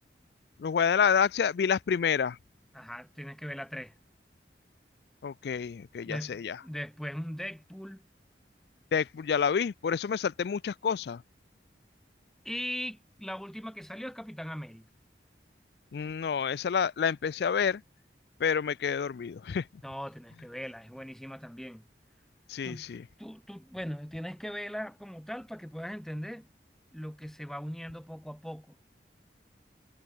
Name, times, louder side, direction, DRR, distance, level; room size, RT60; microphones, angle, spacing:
voice 1, 0.6-2.4 5.2-6.6 8.9-11.2 15.9-17.8 18.4-19.6 22.5-23.0, left 7 dB, 70° left, 0.4 m, -28 dB
voice 2, 2.7-3.9 6.0-8.0 12.4-14.8 19.8-21.8 22.6-22.8 23.2-26.5 26.9-28.8, equal, ahead, 0.6 m, -39 dB
head